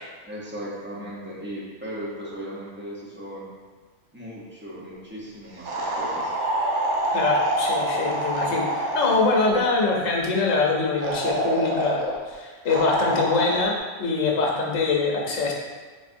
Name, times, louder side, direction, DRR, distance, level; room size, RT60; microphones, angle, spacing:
voice 1, 0.2-3.5 4.1-6.3, equal, 15° right, -7 dB, 0.5 m, -37 dB
sound 1, 5.7-9.6 11.0-12.2 12.7-13.6, right 1 dB, 70° right, 1.0 m, -26 dB
voice 2, 7.1-12.0 12.3-13.7 14.0-15.5, left 3 dB, 80° left, -1 dB, 1.1 m, -23 dB
3.9 x 3.6 x 2.6 m, 1.4 s
omnidirectional pair, 1.3 m